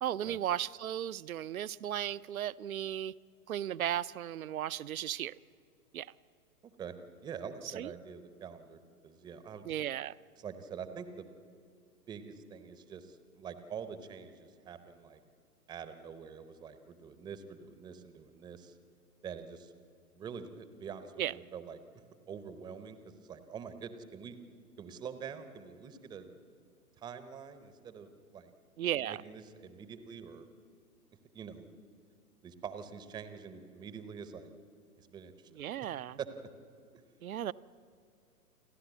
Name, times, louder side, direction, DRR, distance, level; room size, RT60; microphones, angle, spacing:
voice 1, 0.0-3.1 3.5-5.4 5.9-6.1 7.6-7.9 9.6-10.1 21.2-21.3 28.8-29.2 35.6-36.2 37.2-37.5, right 11 dB, 65° right, 0.6 m, -35 dB
voice 2, 6.6-6.9 7.2-9.6 10.4-11.3 12.1-15.2 15.7-18.8 19.2-19.7 20.2-21.8 22.3-24.4 24.8-26.3 27.0-28.5 29.0-30.5 31.3-31.8 32.4-34.5 35.0-35.5 36.2-36.3, right 6 dB, 10° right, 0.7 m, -45 dB
29.0 x 11.5 x 8.1 m
figure-of-eight pair, 115°, 46 cm